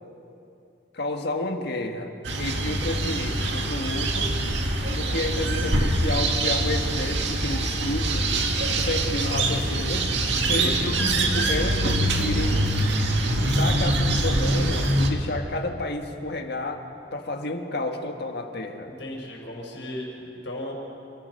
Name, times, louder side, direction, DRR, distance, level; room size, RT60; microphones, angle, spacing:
voice 1, 0.9-4.4 4.9-10.1 10.5-12.7 13.3-16.8 17.1-18.9, left 2 dB, 65° left, 4 dB, 1.7 m, -31 dB
sound 1, 2.2-15.1, right 1 dB, 70° right, 2.0 m, -24 dB
voice 2, 10.4-11.0 19.0-20.7, left 1 dB, 90° left, -1 dB, 5.7 m, -36 dB
28.5 x 16.0 x 6.7 m, 2.9 s
head